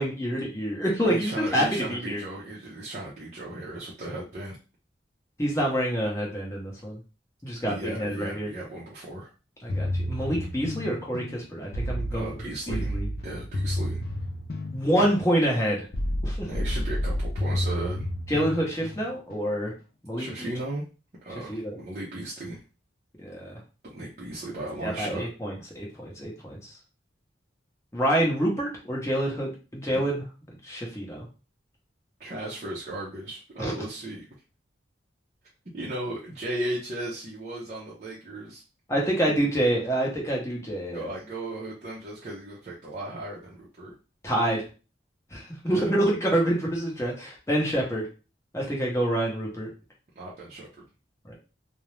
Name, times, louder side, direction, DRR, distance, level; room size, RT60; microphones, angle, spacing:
voice 1, 0.0-2.2 5.4-7.0 7.4-8.5 9.6-12.4 12.7-13.1 14.7-15.9 16.2-16.5 18.3-19.7 20.0-20.5 21.5-21.8 23.2-23.6 24.8-26.6 27.9-30.2 30.6-31.3 33.6-33.7 38.9-41.1 44.2-44.6 45.3-48.1 48.5-49.7 51.3-51.4, right 1 dB, 15° left, -2 dB, 0.7 m, -27 dB
voice 2, 1.1-4.6 7.7-9.3 12.1-14.0 16.5-18.1 20.2-20.9 21.2-22.6 23.8-25.3 29.9-30.1 32.2-34.2 35.7-38.6 40.9-43.9 45.6-45.9 50.2-50.8, right 1 dB, 40° right, -6 dB, 0.5 m, -36 dB
sound 1, 9.7-19.5, equal, 55° left, 0.4 m, -31 dB
2.4 x 2.0 x 3.1 m, 0.33 s
head